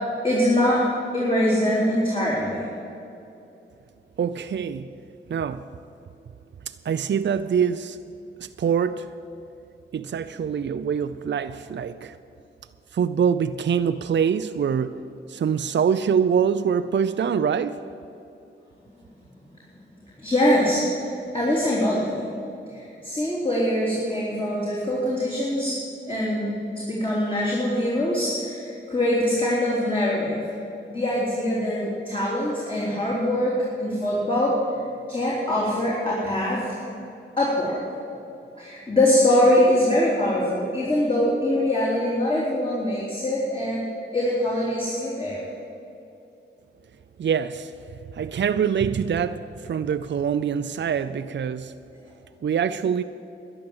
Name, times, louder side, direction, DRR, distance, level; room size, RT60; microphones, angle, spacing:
voice 1, 0.2-0.9 1.1-2.7 20.2-20.8 21.3-22.3 22.7-25.8 26.1-30.4 30.9-34.6 35.1-36.8 37.4-37.8 38.6-43.8 44.1-45.4, left 1 dB, 25° left, -7 dB, 3.8 m, -23 dB
voice 2, 4.2-4.9 5.3-5.6 6.7-8.0 8.4-9.1 9.9-12.2 12.9-15.0 15.3-17.8 47.2-47.7 48.1-51.7 52.4-53.0, right 7 dB, 60° right, 10 dB, 0.5 m, -24 dB
12.0 x 10.5 x 8.0 m, 2.7 s
cardioid pair, 50°, 21 cm